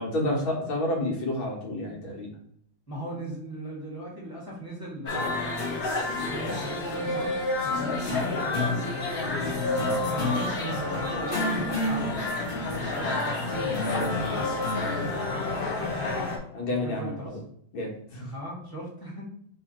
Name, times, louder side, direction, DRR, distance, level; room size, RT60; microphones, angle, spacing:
voice 1, 0.0-2.3 9.7-10.3 16.5-17.3 17.7-18.3, left 1 dB, 75° left, -2 dB, 2.0 m, -30 dB
voice 2, 2.9-9.6 10.1-16.3 16.7-17.4 18.3-19.2, right 1 dB, 10° left, -5 dB, 1.6 m, -39 dB
sound 1, 5.1-16.4, left 2 dB, 40° left, 0.8 m, -28 dB
4.0 x 2.9 x 4.3 m, 0.64 s
omnidirectional pair, 2.2 m